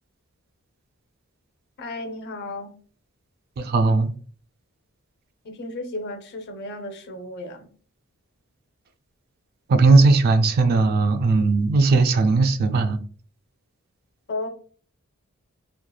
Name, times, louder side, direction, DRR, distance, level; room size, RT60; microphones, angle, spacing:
voice 1, 1.8-2.7 5.4-7.7 14.3-14.5, left 2 dB, 55° left, 0.5 m, -33 dB
voice 2, 3.6-4.1 9.7-13.0, right 3 dB, 45° right, 0.3 m, -18 dB
2.9 x 2.4 x 2.2 m
head